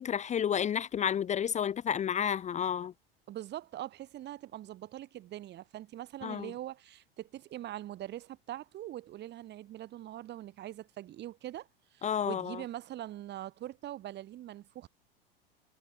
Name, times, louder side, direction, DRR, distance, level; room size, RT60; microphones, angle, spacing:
voice 1, 0.0-2.9 6.2-6.5 12.0-12.6, left 8 dB, 25° left, 1.2 m, -31 dB
voice 2, 3.3-14.9, right 13 dB, 35° right, 4.6 m, -43 dB
figure-of-eight pair, 85°, 30 cm